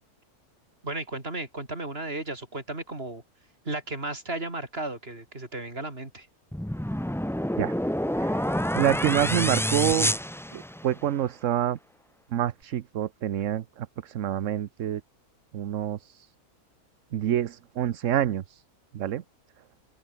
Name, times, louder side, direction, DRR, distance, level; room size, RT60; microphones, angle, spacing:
voice 1, 0.8-3.2 3.6-6.3, right 2 dB, 40° right, 4.4 m, -34 dB
sound 1, 6.5-11.1, equal, 5° left, 0.5 m, -28 dB
voice 2, 8.1-10.2 10.5-11.8 12.3-15.0 15.5-16.3 17.1-18.6 18.9-19.2, right 11 dB, 60° right, 1.1 m, -27 dB
omnidirectional pair, 1.6 m